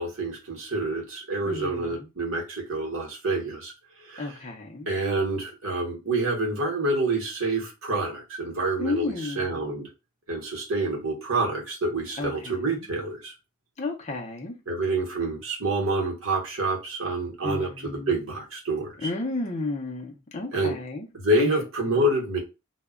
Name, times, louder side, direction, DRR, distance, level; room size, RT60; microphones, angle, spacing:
voice 1, 0.0-3.7 4.1-4.3 4.9-9.9 10.3-13.3 14.7-19.1 20.5-20.8 21.2-22.4, right 2 dB, 75° right, 0.9 m, -27 dB
voice 2, 1.5-2.1 4.2-4.9 8.8-9.7 12.2-12.9 13.8-14.5 17.4-18.2 19.0-21.1 21.4-21.5 21.9-22.0, left 3 dB, 30° left, 0.5 m, -32 dB
2.2 x 2.1 x 3.5 m
head